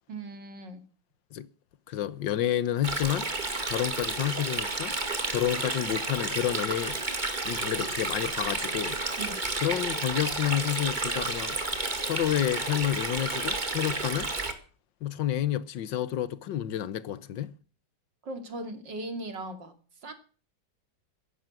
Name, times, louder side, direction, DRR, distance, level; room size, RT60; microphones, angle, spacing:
voice 1, 0.1-0.8 9.2-9.4 18.2-19.7 20.0-20.1, right 2 dB, 70° right, 3.2 m, -38 dB
voice 2, 1.9-3.3 3.7-5.0 5.3-7.0 7.4-9.0 9.6-11.6 12.0-14.3 15.0-17.5, left 11 dB, 75° left, 1.7 m, -29 dB
Stream, 2.8-14.5, right 3 dB, 25° right, 2.2 m, -31 dB
14.5 x 11.0 x 7.8 m
omnidirectional pair, 2.0 m